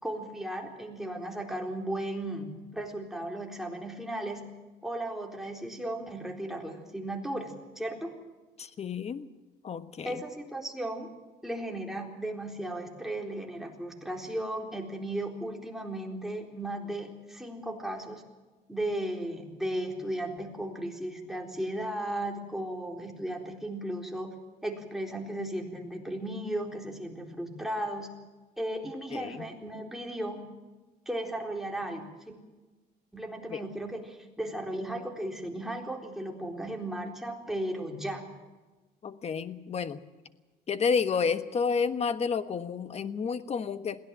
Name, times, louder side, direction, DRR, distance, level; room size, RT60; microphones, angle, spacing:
voice 1, 0.0-4.4 4.8-8.1 10.0-11.1 11.4-18.2 18.7-24.3 24.6-28.1 28.6-30.4 31.1-32.4 33.1-38.2, right 1 dB, ahead, 1 dB, 4.0 m, -35 dB
voice 2, 8.6-9.3 9.6-10.2 29.1-29.5 33.5-33.6 39.0-40.0 40.7-44.0, left 6 dB, 40° left, 11 dB, 1.3 m, -30 dB
22.0 x 17.0 x 7.6 m, 1.2 s
cardioid pair, 110°, 17 cm